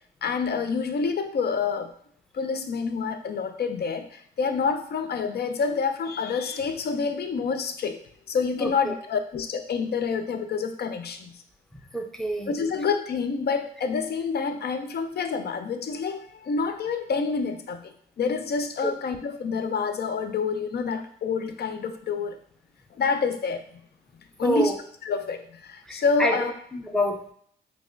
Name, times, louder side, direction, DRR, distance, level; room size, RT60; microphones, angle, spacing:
voice 1, 0.2-1.9 2.3-8.0 8.3-11.3 12.5-22.4 23.0-23.6 24.4-24.7 25.0-26.5, left 5 dB, 50° left, 8 dB, 0.5 m, -28 dB
voice 2, 8.6-8.9 11.9-12.5 18.8-18.9 24.4-24.8 25.9-26.4 26.7-27.3, equal, ahead, 3 dB, 0.7 m, -27 dB
4.7 x 2.4 x 2.5 m, 0.63 s
supercardioid pair, 60°, 21 cm